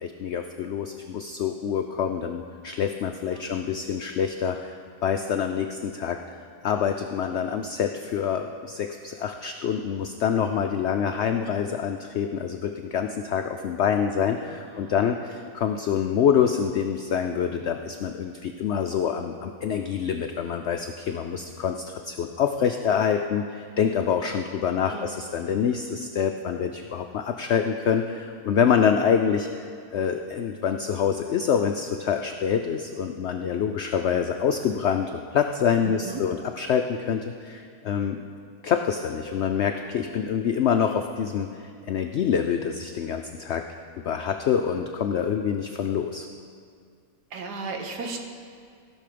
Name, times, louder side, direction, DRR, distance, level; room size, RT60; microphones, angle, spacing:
voice 1, 0.0-6.4 6.6-38.2 38.6-41.5 41.9-43.6 44.0-46.3, left 7 dB, 85° left, 5 dB, 0.6 m, -26 dB
voice 2, 14.4-15.0 24.8-25.1 35.8-36.2 47.3-48.2, right 4 dB, 75° right, 3 dB, 1.6 m, -36 dB
16.0 x 6.2 x 5.1 m, 2.3 s
omnidirectional pair, 1.7 m